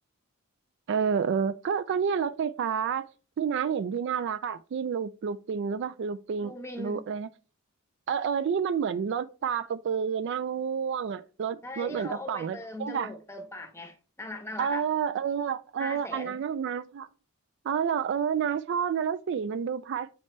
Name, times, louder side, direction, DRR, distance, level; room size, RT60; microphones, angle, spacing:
voice 1, 0.9-3.1 3.4-7.3 8.1-13.1 14.6-17.1 17.6-20.1, right 7 dB, 55° right, 0.3 m, -29 dB
voice 2, 6.4-7.0 11.6-14.8 15.8-16.4, left 1 dB, 10° left, 1.0 m, -40 dB
8.0 x 4.2 x 3.2 m
head